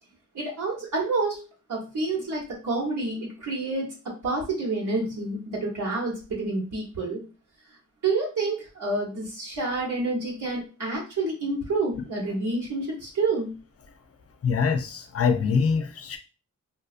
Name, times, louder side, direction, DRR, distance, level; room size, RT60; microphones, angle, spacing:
voice 1, 0.3-1.4 1.7-3.9 4.2-7.2 8.0-13.5, right 3 dB, 70° right, -4 dB, 1.0 m, -28 dB
voice 2, 14.4-16.2, left 5 dB, 45° left, 6 dB, 0.5 m, -24 dB
2.6 x 2.3 x 2.4 m, 0.32 s
cardioid pair, 65°, 32 cm